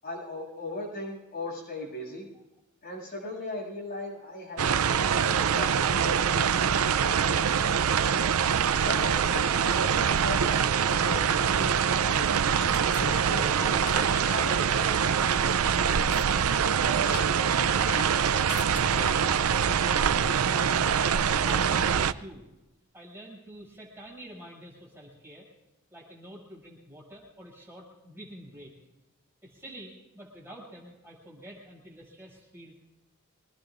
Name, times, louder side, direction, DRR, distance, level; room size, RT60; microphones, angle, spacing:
voice 1, 0.0-2.3 2.8-7.6 8.8-12.3 13.0-15.0, left 2 dB, 40° left, -2 dB, 7.6 m, -38 dB
sound 1, 4.6-22.1, right 7 dB, 70° right, 0.5 m, -24 dB
sound 2, 12.0-18.1 18.5-19.5, left 5 dB, 85° left, 0.8 m, -42 dB
voice 2, 20.7-22.5 22.9-25.5 25.9-28.7 29.4-32.8, right 1 dB, 10° right, -5 dB, 6.8 m, -47 dB
26.5 x 19.5 x 2.5 m, 1.0 s
head